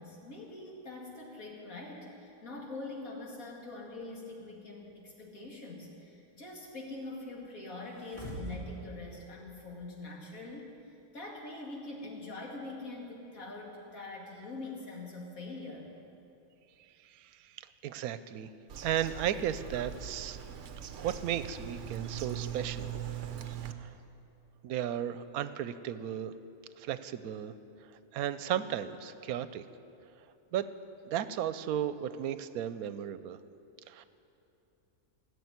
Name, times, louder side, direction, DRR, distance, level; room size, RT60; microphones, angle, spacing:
voice 1, 0.0-10.7 11.1-15.9, left 2 dB, 70° left, -2 dB, 2.7 m, -44 dB
sound 1, 7.9-8.8 9.1-9.2, right 2 dB, 10° right, 2.2 m, -41 dB
voice 2, 17.8-18.5 18.8-20.4 21.0-22.9 23.8-23.9 24.6-26.3 26.8-27.5 28.1-29.7 30.5-30.7 31.1-33.4 33.9-34.0, right 10 dB, 90° right, 13 dB, 1.1 m, -34 dB
Bird vocalization bird call bird song, 18.7-23.7, right 9 dB, 60° right, 1.0 m, -41 dB
17.0 x 6.9 x 9.5 m, 2.8 s
omnidirectional pair, 1.5 m